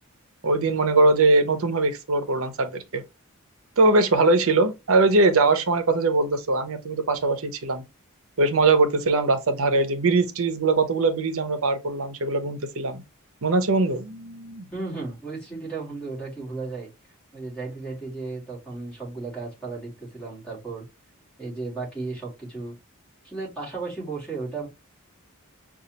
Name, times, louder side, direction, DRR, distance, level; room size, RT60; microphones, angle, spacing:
voice 1, 0.4-3.0 3.8-7.8 8.4-13.0 13.4-14.7, right 3 dB, 70° right, 0.7 m, -21 dB
voice 2, 14.7-16.9 17.3-20.8 21.4-22.7 23.2-24.7, right 3 dB, 5° left, 2.0 m, -34 dB
5.3 x 2.5 x 2.8 m
head